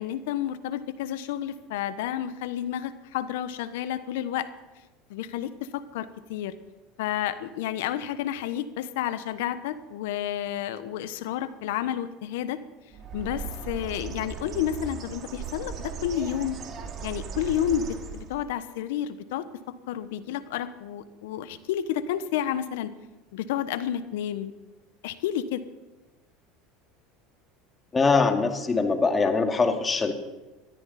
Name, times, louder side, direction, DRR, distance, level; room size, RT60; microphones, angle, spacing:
voice 1, 0.0-4.5 5.1-6.5 7.0-12.6 13.1-16.6 17.0-22.9 23.3-24.5 25.0-25.6, left 10 dB, 75° left, 13 dB, 1.1 m, -30 dB
Bird, 12.9-18.5, right 5 dB, 45° right, 2.6 m, -37 dB
voice 2, 27.9-30.1, left 4 dB, 25° left, 5 dB, 2.3 m, -22 dB
20.5 x 13.5 x 4.2 m, 1.1 s
hypercardioid pair, 85°, 0 cm